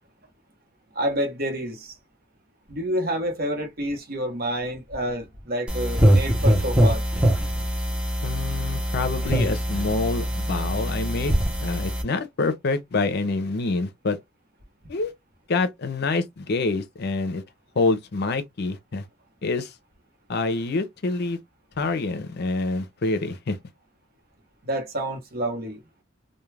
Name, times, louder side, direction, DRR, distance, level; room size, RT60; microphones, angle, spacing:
voice 1, 0.9-1.9 2.7-7.0 24.6-25.8, equal, 50° right, 0.9 m, -28 dB
sound 1, 5.7-12.0, equal, 5° right, 0.7 m, -23 dB
voice 2, 8.2-11.3 11.6-14.2 14.9-15.1 15.5-17.4 17.8-19.0 19.4-19.7 20.3-21.4 21.8-23.6, left 3 dB, 55° left, 0.5 m, -26 dB
2.3 x 2.2 x 3.2 m
head